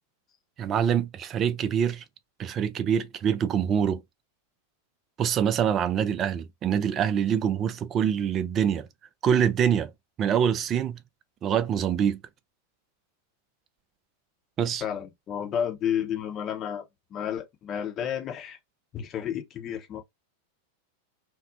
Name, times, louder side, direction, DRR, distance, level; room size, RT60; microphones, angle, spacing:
voice 1, 0.6-2.0 2.4-4.0 5.2-8.9 9.2-9.9 10.2-11.0 11.4-12.2 14.6-14.8, right 8 dB, 30° right, 0.3 m, -25 dB
voice 2, 14.8-16.8 17.1-18.6 18.9-20.0, left 9 dB, 30° left, 0.7 m, -31 dB
2.5 x 2.0 x 2.5 m
figure-of-eight pair, 90°, 0 cm